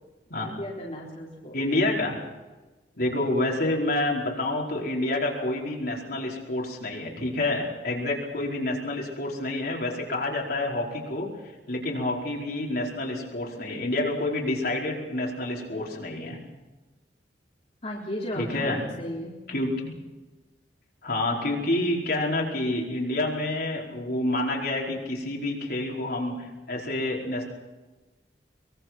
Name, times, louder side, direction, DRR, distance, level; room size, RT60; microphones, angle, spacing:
voice 1, 0.4-1.6 17.8-19.3, left 1 dB, 35° left, -4 dB, 3.8 m, -35 dB
voice 2, 1.5-2.2 3.0-11.3 11.7-16.4 18.3-18.8 19.5-19.9 21.0-27.5, left 2 dB, 55° left, -2 dB, 4.8 m, -28 dB
24.0 x 22.0 x 6.1 m, 1.2 s
head